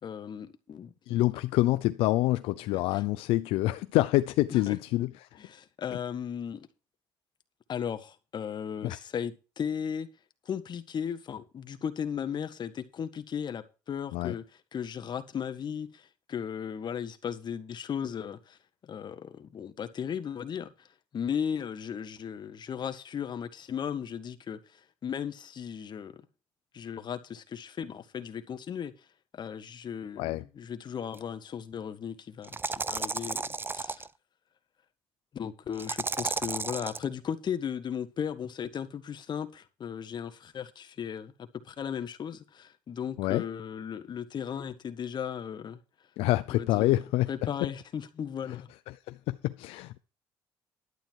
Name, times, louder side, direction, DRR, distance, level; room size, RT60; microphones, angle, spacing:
voice 1, 0.0-1.2 2.7-3.0 4.7-4.8 5.4-6.7 7.7-10.1 10.4-14.4 14.7-18.6 18.8-20.9 21.1-26.2 26.7-28.9 29.3-33.4 33.7-34.1 35.3-45.8 46.5-46.9 47.3-48.7, left 8 dB, 50° left, 1.5 m, -36 dB
voice 2, 1.1-5.1 8.8-9.0 14.1-14.3 30.2-30.4 43.2-43.4 46.2-47.3 48.5-48.6 48.9-50.0, left 17 dB, 85° left, 0.6 m, -27 dB
sound 1, 31.1-31.2 32.4-34.1 35.8-37.0, right 4 dB, 25° right, 0.6 m, -33 dB
11.5 x 9.3 x 4.6 m
supercardioid pair, 75°, 9 cm